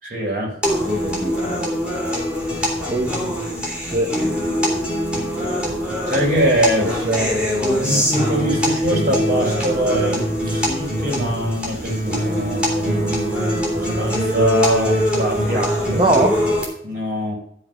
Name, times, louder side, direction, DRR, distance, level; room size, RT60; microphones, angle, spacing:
voice 1, 0.0-0.5 6.1-7.0 7.6-13.1 13.7-16.0 16.8-17.3, right 1 dB, 50° right, -2 dB, 4.5 m, -23 dB
sound 1, 0.6-16.6, equal, 5° right, 3.3 m, -22 dB
voice 2, 0.8-1.6 2.9-3.3 3.9-4.1 6.8-8.0 15.9-16.4, right 1 dB, 25° right, 2 dB, 1.0 m, -22 dB
13.0 x 4.9 x 6.1 m, 0.67 s
head